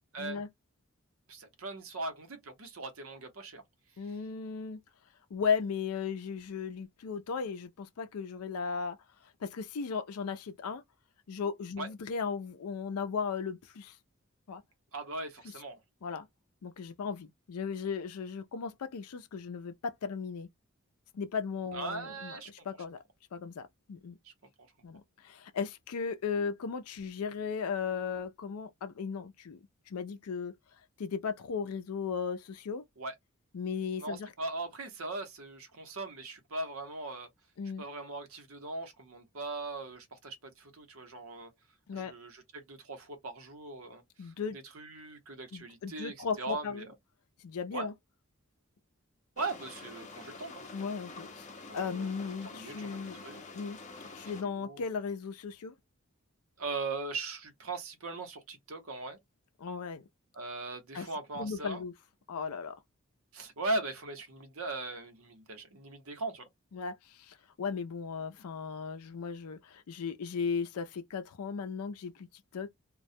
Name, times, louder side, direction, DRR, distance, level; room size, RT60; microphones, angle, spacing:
voice 1, 1.3-3.6 11.8-11.9 14.9-15.8 21.7-22.7 24.2-24.3 24.6-24.7 33.0-33.1 34.0-37.3 37.8-41.5 41.9-46.9 47.7-47.9 49.4-50.5 51.6-52.1 52.4-53.4 54.3-54.8 56.6-59.2 60.3-61.8 63.3-66.5, right 3 dB, 70° right, 0.8 m, -39 dB
voice 2, 4.0-4.8 5.3-9.0 9.4-10.8 11.3-14.0 14.5-14.6 16.0-16.3 16.6-20.5 21.1-23.0 23.3-24.2 24.8-30.5 31.0-32.8 33.5-34.3 37.6-37.8 41.9-42.1 44.2-44.6 45.5-46.9 47.4-47.9 50.7-51.5 51.7-53.2 53.5-53.8 54.1-55.7 59.6-60.1 60.9-61.1 61.3-61.9 62.3-62.7 66.7-72.3 72.5-72.7, left 5 dB, 90° left, 0.4 m, -36 dB
sound 1, 49.4-54.4, left 3 dB, 35° left, 0.6 m, -47 dB
2.2 x 2.1 x 2.6 m
head